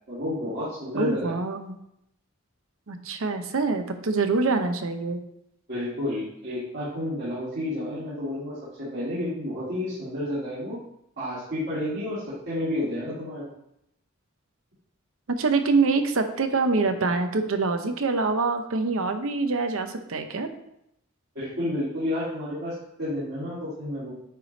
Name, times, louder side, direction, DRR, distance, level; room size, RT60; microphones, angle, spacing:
voice 1, 0.1-1.3 5.7-10.8 11.2-13.4 21.3-24.1, left 1 dB, 55° right, -11 dB, 2.2 m, -31 dB
voice 2, 0.9-1.8 2.9-5.2 15.4-20.5, right 3 dB, 80° right, 7 dB, 0.7 m, -25 dB
9.1 x 3.3 x 3.9 m, 0.78 s
head